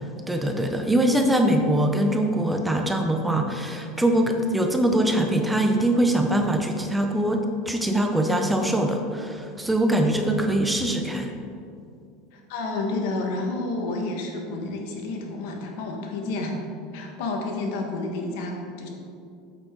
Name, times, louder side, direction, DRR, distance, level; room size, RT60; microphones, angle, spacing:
voice 1, 0.3-11.3, right 1 dB, 5° right, 4 dB, 0.5 m, -23 dB
voice 2, 12.3-16.5 16.9-18.9, left 2 dB, 70° left, 2 dB, 1.5 m, -30 dB
8.4 x 7.5 x 3.8 m, 2.5 s
supercardioid pair, 150°, 0 cm